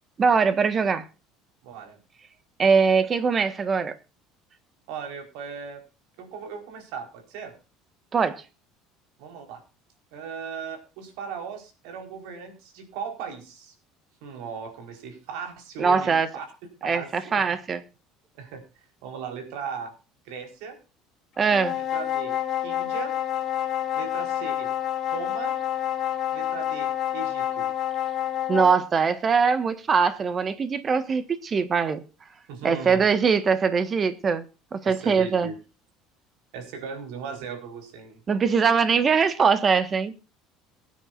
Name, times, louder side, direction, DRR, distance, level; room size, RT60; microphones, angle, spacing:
voice 1, 0.2-1.0 2.6-3.9 8.1-8.4 15.8-16.3 16.8-17.8 21.4-21.7 28.5-32.0 32.6-34.4 34.7-35.5 38.3-40.1, right 5 dB, 30° right, 1.5 m, -22 dB
voice 2, 1.6-2.0 4.9-5.8 6.2-7.5 9.2-9.6 10.1-13.7 14.2-16.5 16.8-17.4 18.3-18.6 19.0-19.9 20.2-20.8 21.8-22.4 22.6-23.1 23.9-24.7 25.1-25.6 26.3-27.7 32.5-33.1 34.8-35.5 36.5-38.2, right 6 dB, 80° right, 4.6 m, -37 dB
sound 1, 21.4-28.9, left 11 dB, 45° left, 2.0 m, -28 dB
22.5 x 9.6 x 2.6 m
cardioid pair, 135°, 0 cm